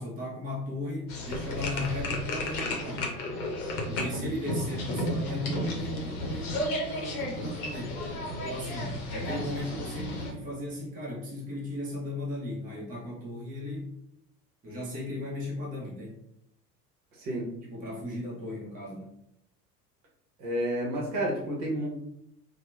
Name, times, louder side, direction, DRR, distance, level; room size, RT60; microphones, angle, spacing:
voice 1, 0.0-3.1 3.9-8.0 8.3-13.9 14.6-16.2 17.6-19.2, left 1 dB, 15° right, -5 dB, 0.8 m, -36 dB
sound 1, 1.1-10.3, left 1 dB, 65° left, 0.8 m, -33 dB
voice 2, 4.0-4.3 17.1-17.5 20.4-21.9, right 1 dB, 45° right, -3 dB, 1.0 m, -31 dB
2.8 x 2.2 x 2.3 m, 0.76 s
figure-of-eight pair, 70°, 48 cm